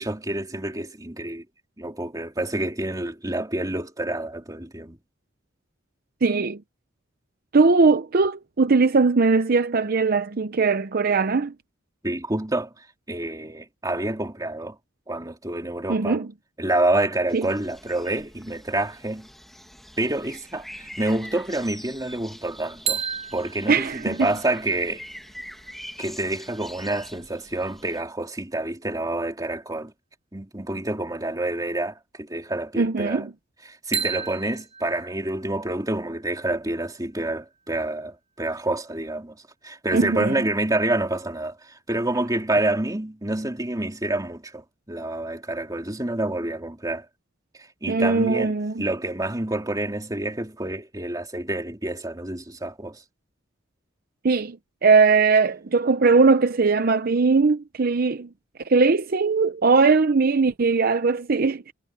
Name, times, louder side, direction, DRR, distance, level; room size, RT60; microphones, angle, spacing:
voice 1, 0.0-1.4 1.8-5.0 12.0-12.7 13.1-14.8 15.1-16.2 16.6-19.3 20.0-23.0 23.3-25.1 26.0-29.9 30.3-33.3 33.6-39.3 39.6-47.0 47.8-53.0, right 2 dB, 20° right, 2.8 m, -28 dB
voice 2, 6.2-6.6 7.5-11.5 15.9-16.3 17.3-17.5 23.7-24.3 32.8-33.3 39.9-40.3 47.9-48.8 54.2-54.6 54.8-58.3 58.6-61.7, right 4 dB, 50° right, 0.7 m, -20 dB
sound 1, 17.3-28.0, equal, ahead, 1.9 m, -44 dB
sound 2, 22.9-26.7 33.9-37.8, right 7 dB, 35° right, 4.3 m, -35 dB
head